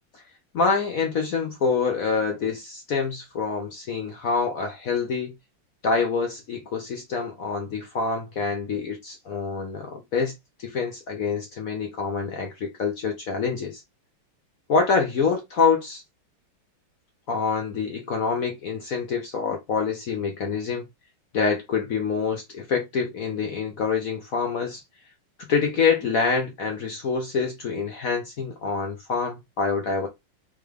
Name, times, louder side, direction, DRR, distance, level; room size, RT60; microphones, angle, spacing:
voice 1, 0.5-5.3 5.8-10.3 10.6-13.8 14.7-16.0 17.3-20.9 21.3-24.8 25.4-30.1, left 5 dB, 60° left, 0.9 m, -26 dB
3.6 x 3.2 x 3.3 m
omnidirectional pair, 2.2 m